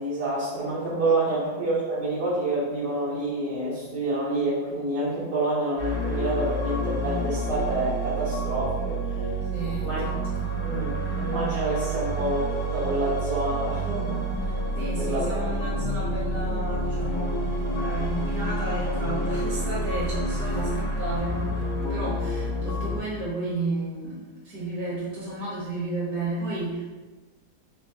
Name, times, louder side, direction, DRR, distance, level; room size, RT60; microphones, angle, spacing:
voice 1, 0.0-9.2 9.8-10.2 10.5-14.3 14.9-15.8, right 2 dB, 80° right, -11 dB, 1.5 m, -28 dB
sound 1, 5.8-23.0, right 1 dB, 65° left, 0.9 m, -28 dB
voice 2, 9.5-10.5 14.8-26.8, right 2 dB, 60° right, -7 dB, 1.2 m, -33 dB
3.4 x 2.6 x 2.7 m, 1.2 s
omnidirectional pair, 1.7 m